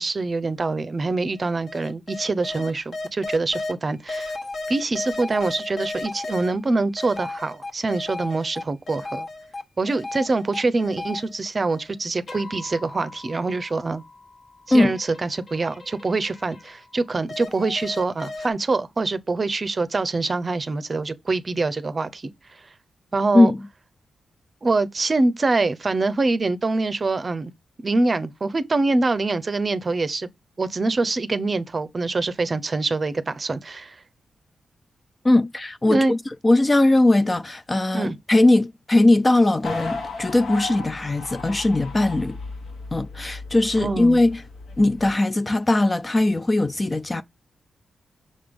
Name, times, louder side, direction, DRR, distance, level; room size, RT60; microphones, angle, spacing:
voice 1, 0.0-4.3 4.7-9.3 9.8-14.0 14.7-22.3 23.1-23.5 24.6-27.5 27.8-30.3 30.6-34.0 35.9-36.1 37.9-38.2 43.8-44.2, right 3 dB, 30° right, 0.6 m, -24 dB
sound 1, 0.6-0.7 1.3-3.7 4.1-6.5 7.0-9.6 9.9-11.9 12.3-16.9 17.3-18.5, left 2 dB, 50° left, 1.3 m, -35 dB
voice 2, 35.2-36.2 36.4-42.4 42.9-44.4 44.8-47.2, left 2 dB, 20° left, 0.3 m, -19 dB
sound 2, 39.6-45.1, left 3 dB, 80° left, 1.7 m, -35 dB
6.4 x 3.6 x 5.2 m
wide cardioid pair, 130°, 0 cm